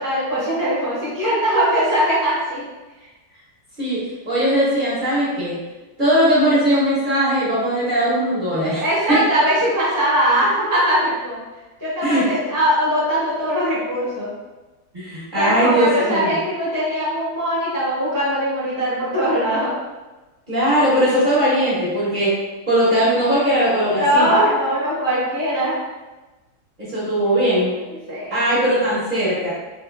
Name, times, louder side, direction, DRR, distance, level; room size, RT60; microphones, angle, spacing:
voice 1, 0.0-2.6 3.0-3.1 8.8-11.4 11.8-14.3 15.4-19.7 24.0-25.7 28.1-28.4, equal, 15° left, -9 dB, 0.7 m, -20 dB
voice 2, 3.8-5.6 6.0-8.8 9.1-9.2 12.0-12.2 14.9-16.3 20.5-22.4 22.7-24.3 26.9-27.7 28.3-29.5, right 1 dB, 35° right, -10 dB, 0.9 m, -19 dB
3.8 x 2.6 x 2.4 m, 1.1 s
omnidirectional pair, 1.7 m